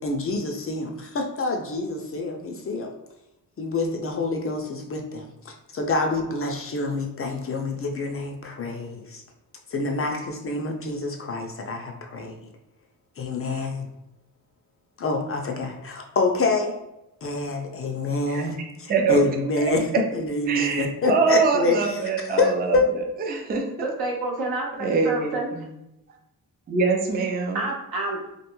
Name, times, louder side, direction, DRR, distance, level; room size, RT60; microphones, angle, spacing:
voice 1, 0.0-2.9 3.6-9.2 9.7-12.3 13.2-13.9 15.0-16.8 17.2-19.9 20.1-21.8 22.4-22.8, left 3 dB, 40° left, 2 dB, 0.4 m, -26 dB
voice 2, 18.9-19.2 19.9-20.0 20.5-23.9 24.8-25.7 26.7-27.6, right 4 dB, 25° right, 2 dB, 0.4 m, -24 dB
voice 3, 23.8-25.5 27.5-28.3, right 2 dB, 75° right, -1 dB, 0.8 m, -29 dB
2.4 x 2.2 x 3.0 m, 0.88 s
cardioid pair, 100°, 38 cm